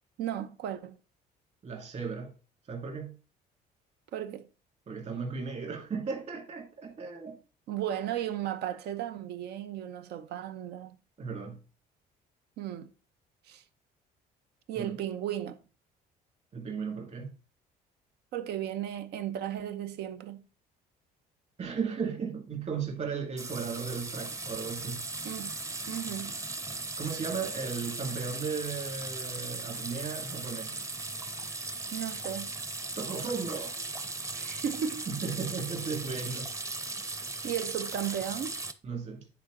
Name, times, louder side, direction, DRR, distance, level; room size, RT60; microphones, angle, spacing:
voice 1, 0.2-1.0 4.1-4.5 7.7-11.0 12.6-12.9 13.5-13.6 14.7-15.6 18.3-20.4 25.2-25.5 25.9-26.4 31.9-32.5 34.3-35.1 37.4-38.6, right 10 dB, 75° right, 0.9 m, -35 dB
voice 2, 1.6-2.4 2.7-3.2 4.9-7.4 11.2-11.6 14.8-15.0 16.5-17.4 21.6-25.1 27.0-30.8 33.0-33.8 35.1-36.5 38.8-39.3, right 5 dB, 40° right, 2.4 m, -36 dB
sound 1, 23.4-38.7, right 3 dB, 20° right, 0.8 m, -38 dB
9.4 x 4.4 x 3.8 m
cardioid pair, 110°, 17 cm